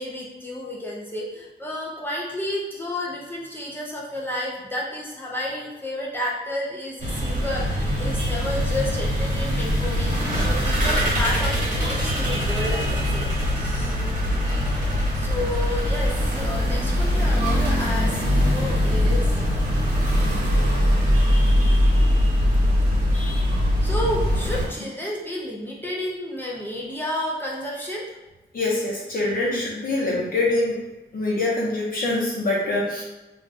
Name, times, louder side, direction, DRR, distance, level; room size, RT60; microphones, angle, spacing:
voice 1, 0.0-10.1 10.5-13.9 15.1-19.4 23.8-28.0, left 1 dB, 10° left, -5 dB, 0.5 m, -31 dB
sound 1, 7.0-24.7, equal, 45° right, 1.0 m, -22 dB
voice 2, 28.5-30.8 31.1-33.0, left 2 dB, 50° left, -5 dB, 0.8 m, -24 dB
2.4 x 2.2 x 3.9 m, 1.1 s
wide cardioid pair, 145°, 18 cm